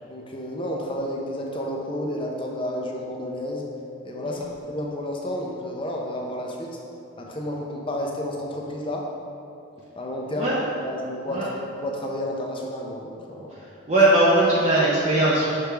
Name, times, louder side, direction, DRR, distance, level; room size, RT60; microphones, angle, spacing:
voice 1, 0.1-3.7 4.0-6.8 7.2-9.0 10.0-10.5 10.8-11.5 11.8-13.5, left 1 dB, 25° left, -1 dB, 0.6 m, -31 dB
voice 2, 10.2-10.6 11.3-11.5 13.6-15.5, right 1 dB, 30° right, -7 dB, 0.7 m, -20 dB
6.7 x 4.6 x 3.3 m, 2.5 s
head